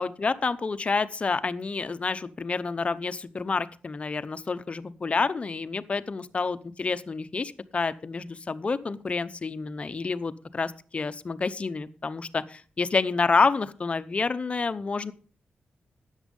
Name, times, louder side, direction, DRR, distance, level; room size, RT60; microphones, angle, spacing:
voice 1, 0.0-15.1, left 4 dB, 35° left, 13 dB, 0.7 m, -28 dB
13.0 x 9.0 x 5.4 m, 0.40 s
wide cardioid pair, 130°, 4 cm